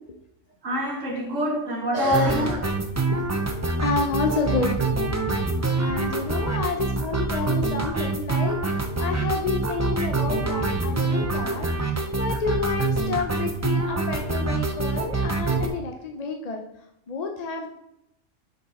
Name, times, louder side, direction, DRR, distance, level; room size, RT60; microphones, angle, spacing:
voice 1, 0.6-2.7 7.4-7.5, equal, 75° right, 1.9 m, -25 dB
sound 1, 2.1-15.7, right 3 dB, 25° right, 0.3 m, -25 dB
voice 2, 3.0-3.5 3.8-5.1 5.8-16.6 17.1-17.8, left 4 dB, 45° left, 0.5 m, -30 dB
6.8 x 5.4 x 4.2 m
omnidirectional pair, 1.3 m